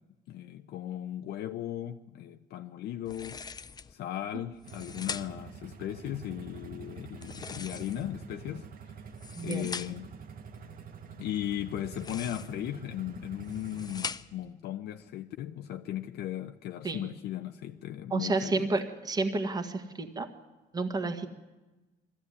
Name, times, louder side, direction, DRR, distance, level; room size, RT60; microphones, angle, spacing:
voice 1, 0.3-3.4 3.9-8.7 9.4-10.1 11.2-18.7, left 12 dB, 75° left, 0.8 m, -37 dB
sound 1, 3.1-3.9 4.5-5.5 7.1-8.2 9.0-10.1 11.8-12.7 13.3-14.5, left 5 dB, 25° left, 0.6 m, -42 dB
sound 2, 4.6-14.1, right 6 dB, 60° right, 1.4 m, -46 dB
voice 2, 9.4-9.7 16.8-17.0 18.1-20.3 20.7-21.3, right 3 dB, 25° right, 1.7 m, -30 dB
21.0 x 15.0 x 9.6 m
cardioid pair, 110°, 17 cm